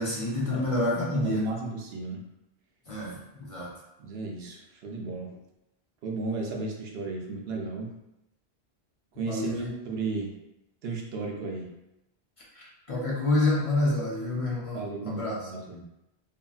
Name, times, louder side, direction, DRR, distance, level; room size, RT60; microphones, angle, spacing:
voice 1, 0.0-1.4 2.9-3.7 9.3-9.7 12.5-15.3, left 2 dB, 40° left, -6 dB, 0.6 m, -28 dB
voice 2, 0.9-2.2 4.0-5.3 6.0-8.0 9.1-10.4 10.8-11.7 14.7-15.8, right 3 dB, 75° right, 0 dB, 0.8 m, -34 dB
2.8 x 2.6 x 2.3 m, 0.93 s
omnidirectional pair, 1.0 m